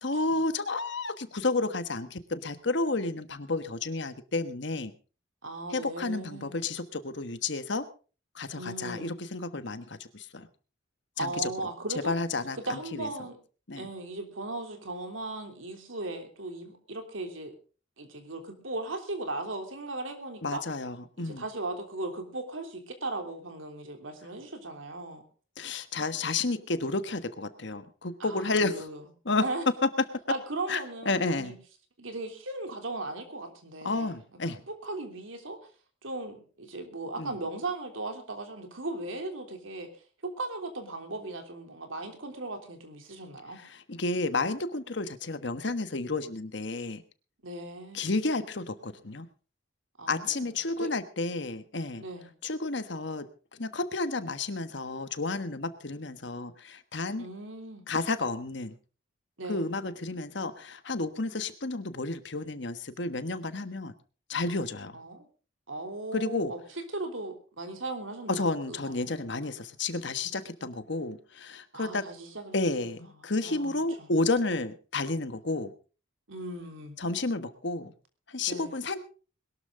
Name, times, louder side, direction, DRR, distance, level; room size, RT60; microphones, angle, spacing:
voice 1, 0.0-4.9 5.7-7.9 8.3-10.5 11.2-11.5 12.0-13.1 13.7-13.9 20.4-21.4 25.6-28.9 29.2-29.5 29.8-29.9 30.7-31.5 33.8-34.6 37.2-37.4 43.7-47.0 47.9-49.3 50.1-52.0 52.4-57.3 57.9-58.7 59.5-63.9 64.3-65.0 66.1-66.5 68.3-72.1 72.5-75.7 77.0-77.9 78.3-79.0, left 3 dB, 60° left, 11 dB, 1.3 m, -31 dB
voice 2, 5.4-6.6 8.5-9.2 11.2-12.1 12.5-13.4 13.8-17.5 18.0-20.6 21.2-25.2 28.2-29.0 29.4-29.6 30.3-31.6 32.0-34.1 34.7-35.6 36.0-39.9 40.2-43.6 47.4-48.2 50.0-50.5 50.8-50.9 52.0-52.3 57.2-57.8 59.4-59.7 64.9-65.3 65.7-69.2 71.7-72.9 73.2-73.7 74.0-74.1 76.3-77.0 78.5-78.7, right 2 dB, 80° right, 5 dB, 3.3 m, -37 dB
21.5 x 12.5 x 3.8 m, 0.36 s
head